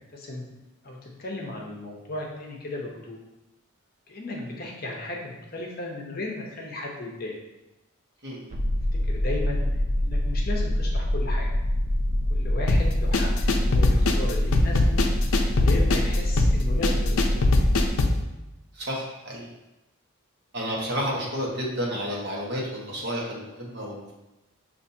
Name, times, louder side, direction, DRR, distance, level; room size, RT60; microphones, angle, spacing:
voice 1, 0.1-0.4 0.8-3.2 4.1-7.4 8.9-9.7 10.0-11.5 12.3-15.0 15.5-17.5, left 2 dB, 45° left, -1 dB, 0.8 m, -35 dB
voice 2, 8.2-8.5 18.7-19.5 20.5-24.1, equal, 50° right, -3 dB, 1.0 m, -31 dB
sound 1, 8.5-17.9, left 1 dB, 35° right, 0.5 m, -25 dB
sound 2, 12.7-18.2, left 2 dB, 75° left, 0.5 m, -22 dB
6.9 x 2.5 x 2.7 m, 0.98 s
head